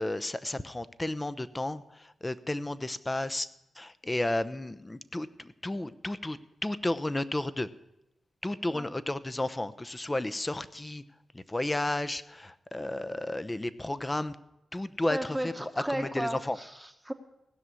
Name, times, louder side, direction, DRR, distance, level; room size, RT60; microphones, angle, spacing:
voice 1, 0.0-3.5 3.8-7.7 8.4-11.0 11.3-14.4 14.7-15.2 15.9-16.6, left 1 dB, 20° left, 14 dB, 0.8 m, -32 dB
voice 2, 15.1-17.1, right 1 dB, 10° right, 7 dB, 1.2 m, -35 dB
17.0 x 6.2 x 9.8 m, 0.89 s
cardioid pair, 50°, 0 cm